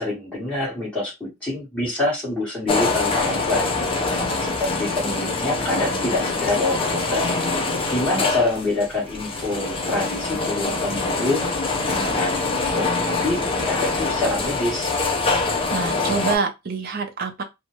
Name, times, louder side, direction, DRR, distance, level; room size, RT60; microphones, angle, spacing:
voice 1, 0.0-3.7 4.4-7.3 7.9-11.6 11.8-12.4 12.7-14.9, left 2 dB, 5° left, 1.4 m, -26 dB
sound 1, 2.7-16.4, left 3 dB, 25° left, 0.5 m, -24 dB
voice 2, 15.7-17.4, right 5 dB, 45° right, 0.6 m, -26 dB
2.6 x 2.2 x 3.0 m
head